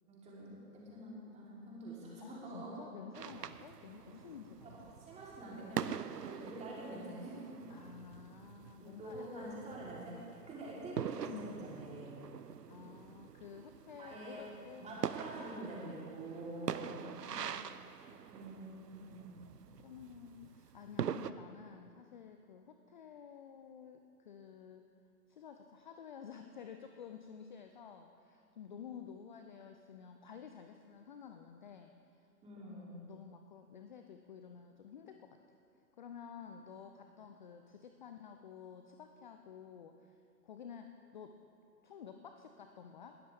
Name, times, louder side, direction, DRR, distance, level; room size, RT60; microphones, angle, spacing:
voice 1, 0.1-2.7 3.9-4.1 4.6-4.8 5.0-7.6 8.8-12.1 14.0-14.4 14.8-16.7 18.3-19.3 32.4-33.1, right 1 dB, 15° right, -6 dB, 3.4 m, -46 dB
voice 2, 2.2-4.9 7.7-9.7 10.7-11.6 12.7-14.9 16.8-18.2 19.8-24.9 25.3-32.3 32.6-35.4 36.0-41.4 41.8-43.2, left 7 dB, 30° left, 6 dB, 0.5 m, -52 dB
sound 1, 3.1-21.3, right 8 dB, 80° right, 0.6 m, -44 dB
20.0 x 13.0 x 3.5 m, 2.5 s
figure-of-eight pair, 120°, 48 cm